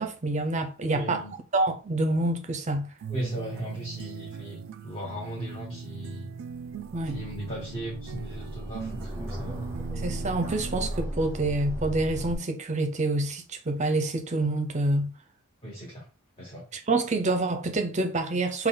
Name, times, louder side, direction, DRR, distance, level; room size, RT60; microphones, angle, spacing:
voice 1, 0.0-1.2 1.5-2.9 6.9-7.2 10.0-15.1 16.9-18.7, right 2 dB, 35° right, 0.6 m, -27 dB
voice 2, 0.9-1.4 3.1-6.3 7.0-9.7 15.6-16.1 16.4-16.7, equal, 25° left, 1.2 m, -37 dB
sound 1, 3.0-11.0, right 7 dB, 70° right, 0.3 m, -40 dB
sound 2, 6.5-12.4, right 1 dB, 15° right, 0.9 m, -36 dB
3.8 x 2.3 x 3.9 m
head